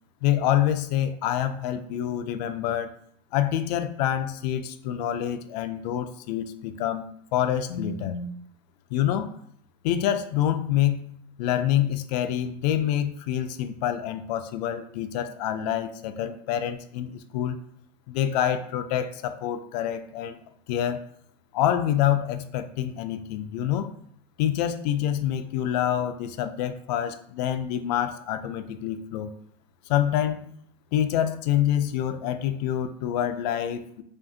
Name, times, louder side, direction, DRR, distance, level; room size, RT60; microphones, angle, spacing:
voice 1, 0.2-2.9 3.3-7.0 7.3-8.4 8.9-9.3 9.8-11.0 11.4-17.6 18.1-20.4 20.7-21.0 21.5-23.9 24.4-29.3 29.9-30.5 30.9-34.0, left 11 dB, 90° left, 10 dB, 0.4 m, -26 dB
4.9 x 2.5 x 2.7 m, 0.67 s
supercardioid pair, 160°, 20 cm